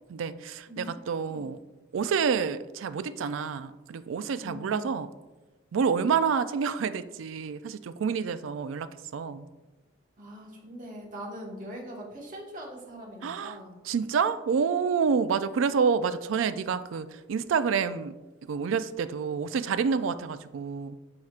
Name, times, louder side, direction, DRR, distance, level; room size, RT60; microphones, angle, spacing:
voice 1, 0.1-1.6 1.9-5.1 5.7-9.5 13.2-13.6 13.8-18.2 18.4-21.0, right 6 dB, 80° right, 13 dB, 0.4 m, -28 dB
voice 2, 0.7-1.5 4.4-5.0 10.2-13.8, equal, 40° right, -2 dB, 1.5 m, -42 dB
9.5 x 4.3 x 2.4 m, 1.1 s
head